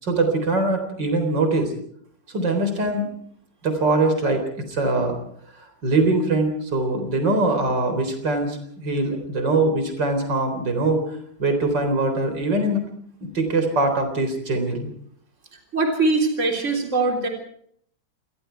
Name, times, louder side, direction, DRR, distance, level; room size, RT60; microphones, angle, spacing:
voice 1, 0.0-1.7 2.3-3.1 3.6-5.2 5.6-11.0 11.4-12.8 13.3-14.9, right 2 dB, 85° right, 6 dB, 4.7 m, -22 dB
voice 2, 15.7-17.3, right 3 dB, 40° right, 2 dB, 4.0 m, -21 dB
27.0 x 21.0 x 4.6 m, 0.64 s
omnidirectional pair, 1.9 m